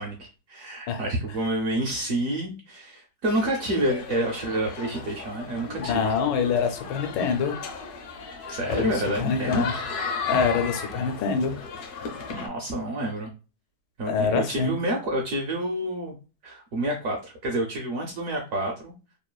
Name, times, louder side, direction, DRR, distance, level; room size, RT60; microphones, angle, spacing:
voice 1, 0.0-6.0 8.5-9.6 12.3-13.3 14.0-16.1 16.4-18.9, right 1 dB, 65° right, 1 dB, 0.8 m, -28 dB
sound 1, 3.3-12.5, left 5 dB, 70° left, 1.0 m, -35 dB
voice 2, 5.9-7.6 8.7-8.9 9.2-9.7 10.3-11.6 14.1-14.7, left 6 dB, 85° left, 6 dB, 1.3 m, -25 dB
3.1 x 2.3 x 2.2 m, 0.32 s
omnidirectional pair, 1.9 m